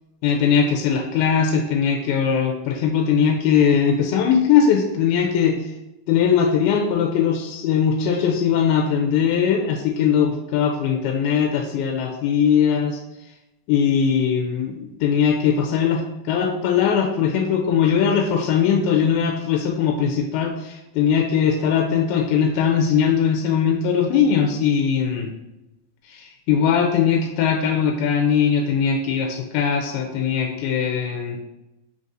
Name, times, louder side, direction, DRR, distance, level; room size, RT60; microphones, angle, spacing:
voice 1, 0.2-5.7 6.1-13.0 13.7-25.3 26.1-31.4, left 7 dB, 80° left, 2 dB, 2.3 m, -20 dB
5.3 x 3.9 x 2.5 m, 0.95 s
omnidirectional pair, 4.6 m